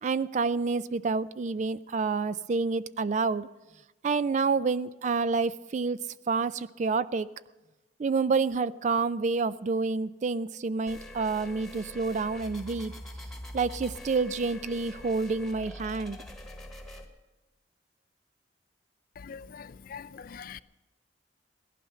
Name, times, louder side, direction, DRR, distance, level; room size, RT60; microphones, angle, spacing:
voice 1, 0.0-3.5 4.0-6.0 6.3-7.3 8.0-12.9 13.5-16.2, right 4 dB, 40° right, 16 dB, 0.4 m, -28 dB
sound 1, 10.9-17.1, left 1 dB, ahead, 1.4 m, -44 dB
voice 2, 19.2-20.6, left 6 dB, 50° left, 17 dB, 0.4 m, -43 dB
17.0 x 12.0 x 5.6 m, 1.1 s
head